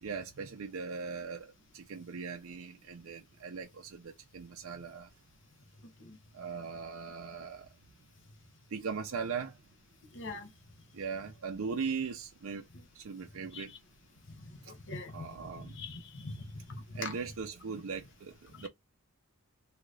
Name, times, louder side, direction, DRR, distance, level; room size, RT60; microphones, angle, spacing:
voice 1, 0.0-5.1 6.3-7.7 8.7-9.5 10.9-12.6 13.0-13.7 15.1-15.7 16.9-18.7, right 5 dB, 75° right, 0.5 m, -39 dB
voice 2, 10.1-10.5 13.5-13.8 14.3-15.3 15.6-17.1 18.5-18.7, left 3 dB, 60° left, 0.7 m, -43 dB
2.7 x 2.4 x 3.2 m
head